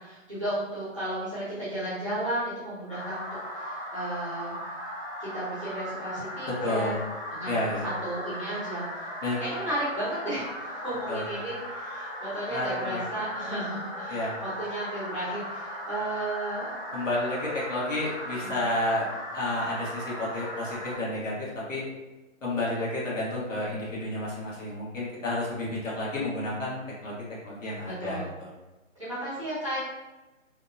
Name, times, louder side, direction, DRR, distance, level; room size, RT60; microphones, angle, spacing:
voice 1, 0.0-3.3 3.5-4.6 5.2-6.9 7.3-9.1 9.4-16.7 18.3-18.5 27.9-28.3 29.0-29.8, right 1 dB, 25° right, -11 dB, 0.7 m, -34 dB
sound 1, 2.9-21.0, equal, 45° left, 1.0 m, -37 dB
voice 2, 6.6-7.0 7.5-7.8 9.2-9.4 11.1-11.4 12.5-13.0 14.1-14.3 16.9-19.1 19.3-21.3 21.7-21.8 22.4-27.1 27.4-28.5, left 1 dB, 70° left, -6 dB, 1.2 m, -31 dB
2.7 x 2.1 x 2.6 m, 1.1 s
hypercardioid pair, 175°, 39 cm